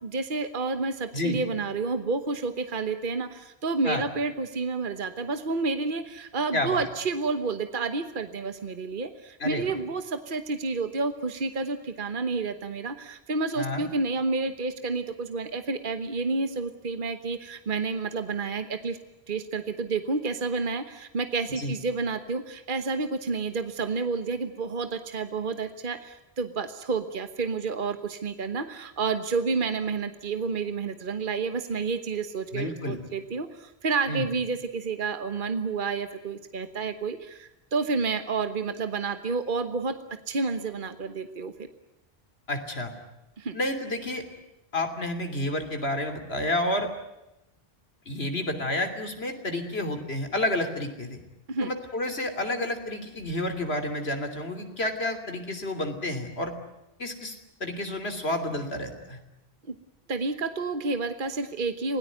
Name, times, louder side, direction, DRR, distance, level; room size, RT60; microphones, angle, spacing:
voice 1, 0.0-19.0 19.3-40.0 40.3-41.5 43.4-43.6 51.5-51.7 59.7-59.8 60.1-62.0, right 4 dB, 55° right, 9 dB, 1.4 m, -30 dB
voice 2, 6.5-6.9 9.4-9.7 13.5-13.8 21.6-21.7 32.5-33.0 34.1-34.3 42.5-42.9 43.5-44.2 44.7-46.9 48.1-51.2 51.6-56.5 57.0-59.2, left 1 dB, 90° left, 6 dB, 3.4 m, -30 dB
27.5 x 18.0 x 9.3 m, 0.92 s
omnidirectional pair, 1.0 m